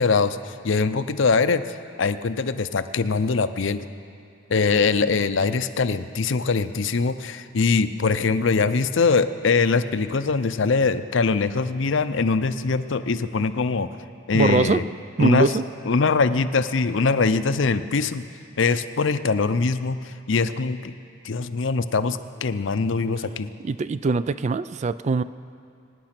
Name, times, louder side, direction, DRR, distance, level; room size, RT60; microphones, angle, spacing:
voice 1, 0.0-3.8 4.5-14.0 14.3-14.8 15.2-15.5 15.9-18.3 18.6-20.9 21.2-23.5, left 4 dB, 65° left, 12 dB, 0.6 m, -22 dB
voice 2, 14.3-14.8 15.2-15.6 23.6-25.2, right 4 dB, 35° right, 15 dB, 0.3 m, -22 dB
24.0 x 9.9 x 5.9 m, 2.5 s
head